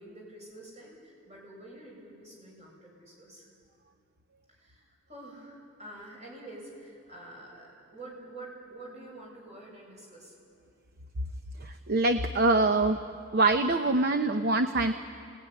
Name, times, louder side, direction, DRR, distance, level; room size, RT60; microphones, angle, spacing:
voice 1, 0.0-3.5 4.5-10.3, right 1 dB, 35° right, -2 dB, 7.5 m, -47 dB
voice 2, 11.6-13.0 13.3-14.9, right 2 dB, 55° right, 7 dB, 0.9 m, -24 dB
27.0 x 19.0 x 9.9 m, 2.4 s
head